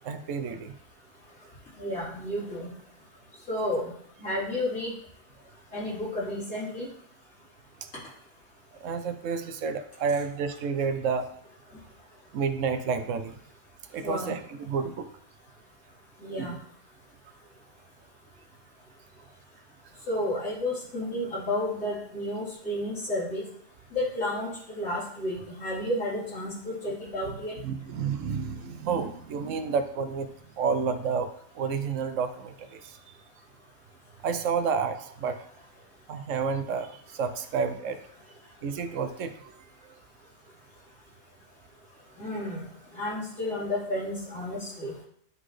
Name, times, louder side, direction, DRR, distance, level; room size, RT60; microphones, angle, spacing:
voice 1, 0.0-0.7 8.8-11.3 12.3-13.4 13.9-15.1 16.4-16.6 27.2-27.4 27.6-30.3 30.6-31.3 31.5-33.0 34.2-35.4 36.1-38.0 38.6-39.5, right 5 dB, 70° right, 9 dB, 0.9 m, -30 dB
voice 2, 1.8-2.7 3.5-3.9 4.2-4.9 5.7-6.9 14.0-14.4 16.2-16.5 20.1-23.4 23.9-27.5 42.2-42.6 42.9-44.9, left 1 dB, 80° left, -10 dB, 3.9 m, -31 dB
10.5 x 4.0 x 3.2 m, 0.65 s
omnidirectional pair, 1.4 m